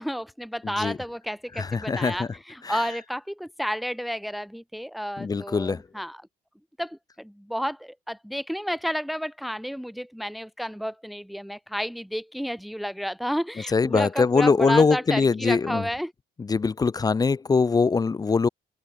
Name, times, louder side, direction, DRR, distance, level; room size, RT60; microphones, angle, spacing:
voice 1, 0.0-6.2 6.8-16.1, equal, ahead, 1.6 m, -31 dB
voice 2, 1.6-2.3 2.6-2.8 5.2-5.8 13.7-15.8 16.4-18.5, left 4 dB, 20° left, 0.8 m, -22 dB
cardioid pair, 110°, 17 cm